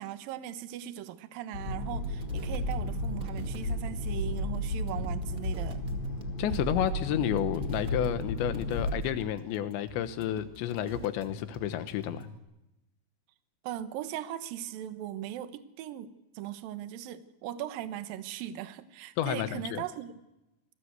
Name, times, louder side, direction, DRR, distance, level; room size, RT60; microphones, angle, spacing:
voice 1, 0.0-5.8 6.4-6.7 13.6-16.1 16.3-20.1, right 12 dB, 65° right, 11 dB, 2.6 m, -39 dB
sound 1, 1.5-9.0, left 1 dB, 55° left, 5.3 m, -33 dB
sound 2, 1.7-12.4, right 1 dB, 30° right, 1.9 m, -48 dB
voice 2, 6.4-12.3 19.2-19.8, left 11 dB, 90° left, 11 dB, 3.5 m, -31 dB
27.5 x 19.5 x 8.1 m, 0.95 s
omnidirectional pair, 5.0 m